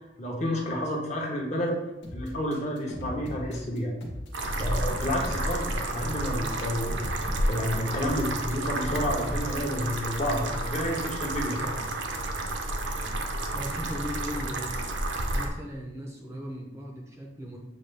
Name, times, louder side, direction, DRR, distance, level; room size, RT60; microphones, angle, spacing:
voice 1, 0.2-1.7 2.1-3.9 4.6-7.0 7.5-11.8, left 1 dB, 35° left, -1 dB, 0.7 m, -30 dB
sound 1, 2.0-9.8, left 1 dB, 60° left, 1.0 m, -39 dB
sound 2, 4.3-15.5, right 1 dB, 65° right, 0.5 m, -31 dB
voice 2, 13.5-14.9 15.2-17.6, equal, 15° right, 0 dB, 0.5 m, -38 dB
6.5 x 2.2 x 3.2 m, 1.0 s
head